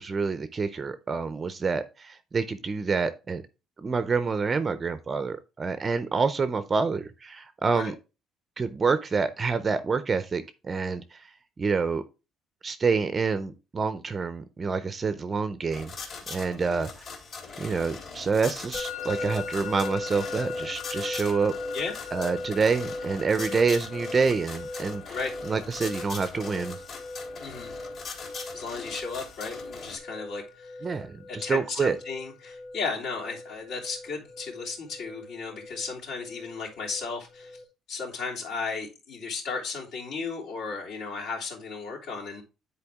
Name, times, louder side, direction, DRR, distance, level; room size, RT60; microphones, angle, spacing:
voice 1, 0.0-3.4 3.8-7.9 8.6-11.3 11.6-12.0 12.6-15.9 16.3-16.9 17.6-21.5 22.1-25.2 25.5-26.8 30.8-32.0, right 4 dB, 25° right, 12 dB, 0.5 m, -27 dB
sound 1, 15.7-30.0, left 4 dB, 45° left, 2.7 m, -41 dB
Musical instrument, 18.7-37.6, left 3 dB, 30° left, 1.3 m, -39 dB
voice 2, 21.7-22.1 25.1-25.3 27.4-27.7 28.5-30.7 31.3-37.6 37.9-42.4, left 4 dB, 75° left, -5 dB, 3.0 m, -35 dB
9.8 x 4.3 x 3.4 m, 0.29 s
cardioid pair, 165°, 0 cm